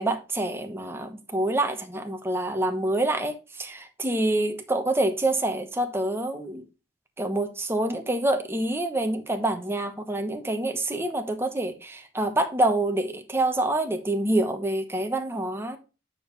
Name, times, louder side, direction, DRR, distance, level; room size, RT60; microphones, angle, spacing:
voice 1, 0.0-6.6 7.2-15.8, right 1 dB, 10° right, 1.0 m, -26 dB
8.7 x 5.1 x 3.1 m
head